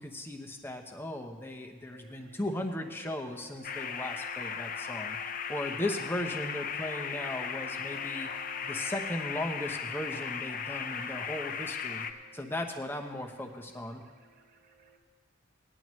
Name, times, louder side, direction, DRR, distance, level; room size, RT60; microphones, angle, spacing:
voice 1, 0.0-5.2 5.5-8.3 8.6-12.1 12.3-14.0, left 1 dB, 10° left, 3 dB, 0.9 m, -37 dB
sound 1, 1.9-15.0, right 2 dB, 45° right, 1.0 m, -55 dB
sound 2, 3.6-12.1, left 7 dB, 45° left, 0.6 m, -37 dB
18.5 x 10.5 x 3.2 m, 1.5 s
head